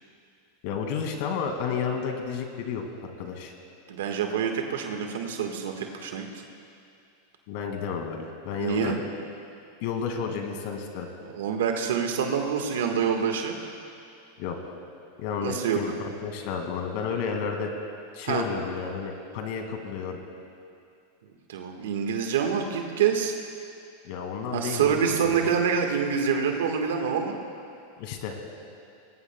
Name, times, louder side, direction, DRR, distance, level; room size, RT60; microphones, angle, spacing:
voice 1, 0.6-2.8 3.2-3.5 7.5-9.0 9.8-11.1 14.4-14.6 15.2-17.7 18.1-20.2 24.0-25.5 28.0-28.4, left 6 dB, 60° left, 4 dB, 2.1 m, -31 dB
voice 2, 3.9-6.3 8.6-9.0 11.2-13.6 15.4-15.8 18.2-18.4 21.5-23.3 24.5-27.4, right 7 dB, 80° right, 3 dB, 1.4 m, -26 dB
20.5 x 18.5 x 2.2 m, 2.5 s
hypercardioid pair, 115°, 0 cm